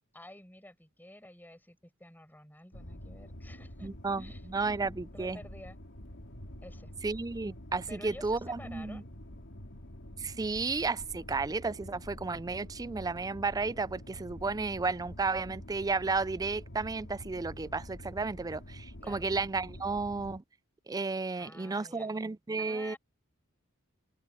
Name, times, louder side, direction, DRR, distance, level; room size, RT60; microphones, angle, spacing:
voice 1, 0.1-4.5 5.1-5.8 6.6-6.9 7.9-9.1 19.0-19.3 21.3-22.1 22.6-23.0, left 1 dB, 10° left, 7.4 m, -51 dB
sound 1, 2.7-20.4, equal, 60° left, 3.2 m, -47 dB
voice 2, 3.8-4.2 4.5-5.4 7.0-9.0 10.2-20.4 20.9-23.0, right 4 dB, 15° right, 0.4 m, -33 dB
open air
head